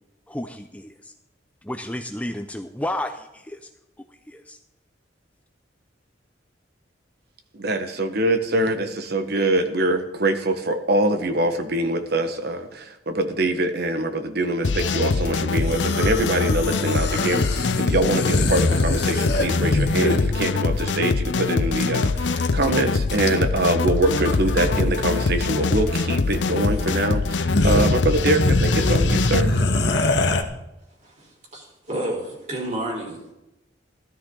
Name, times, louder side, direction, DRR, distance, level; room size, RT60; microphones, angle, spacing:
voice 1, 0.3-1.1 1.6-3.7 4.3-4.6, left 1 dB, 10° left, 6 dB, 0.6 m, -32 dB
voice 2, 7.5-29.6, right 1 dB, 60° right, 7 dB, 1.4 m, -24 dB
sound 1, 14.6-29.4, left 4 dB, 80° left, 0.6 m, -23 dB
sound 2, 15.6-20.3 21.8-21.9 22.1-22.7 23.1-23.6 24.1-24.8 25.1-25.3 26.4-26.5 27.0-27.1 27.3-30.4, left 2 dB, 65° left, 1.3 m, -24 dB
voice 3, 31.0-33.3, right 1 dB, 40° right, -1 dB, 4.2 m, -31 dB
16.0 x 13.0 x 3.9 m, 0.91 s
head